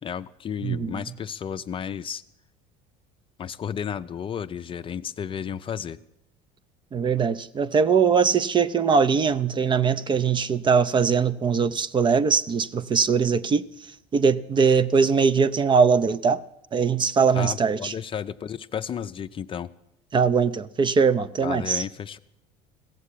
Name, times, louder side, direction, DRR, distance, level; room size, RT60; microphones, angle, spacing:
voice 1, 0.0-2.2 3.4-6.0 17.3-19.7 21.4-22.2, left 8 dB, 35° left, 0.5 m, -32 dB
voice 2, 0.6-1.0 6.9-13.6 14.1-16.4 16.7-17.9 20.1-21.8, right 5 dB, 30° right, 0.5 m, -21 dB
16.0 x 7.2 x 9.9 m
supercardioid pair, 100°, 16 cm